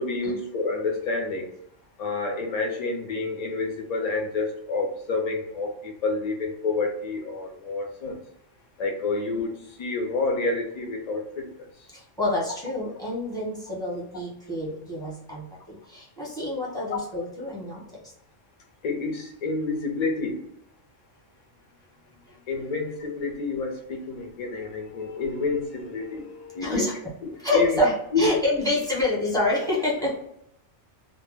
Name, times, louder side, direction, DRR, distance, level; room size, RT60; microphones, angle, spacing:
voice 1, 0.0-1.5 2.0-8.2 8.8-11.5 16.9-17.0 18.8-20.4 22.5-27.8 28.1-28.6, left 3 dB, 55° left, 2 dB, 0.4 m, -28 dB
voice 2, 12.2-17.8 26.6-26.9 27.4-27.9 28.2-30.1, left 2 dB, 5° left, -5 dB, 0.7 m, -27 dB
2.1 x 2.0 x 3.3 m, 0.77 s
omnidirectional pair, 1.3 m